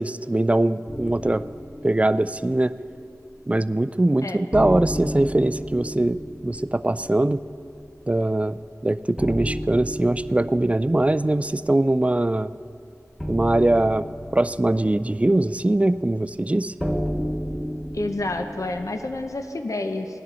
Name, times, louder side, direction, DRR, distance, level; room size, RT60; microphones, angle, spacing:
voice 1, 0.0-1.4 1.8-2.7 3.5-7.4 8.1-8.6 8.8-12.5 13.3-14.1 14.3-16.7, right 1 dB, 20° right, 14 dB, 0.3 m, -22 dB
sound 1, 0.9-3.7 4.0-4.1 4.5-19.3, equal, ahead, 0.9 m, -34 dB
voice 2, 17.9-20.2, left 2 dB, 60° left, 6 dB, 0.7 m, -29 dB
17.5 x 11.0 x 4.2 m, 2.4 s
wide cardioid pair, 55°, 6 cm